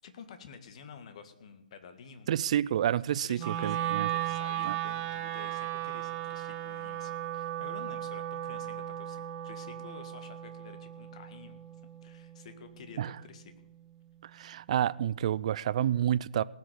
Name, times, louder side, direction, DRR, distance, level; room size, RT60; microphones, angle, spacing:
voice 1, 0.0-2.3 3.2-11.6 12.0-13.5, left 6 dB, 45° left, 1.8 m, -50 dB
voice 2, 2.3-4.1 4.6-4.8 13.0-13.1 14.2-16.4, right 11 dB, 45° right, 0.5 m, -29 dB
Wind instrument woodwind instrument, 3.4-13.5, right 12 dB, 25° right, 1.0 m, -36 dB
18.5 x 6.6 x 7.8 m
hypercardioid pair, 145°, 5 cm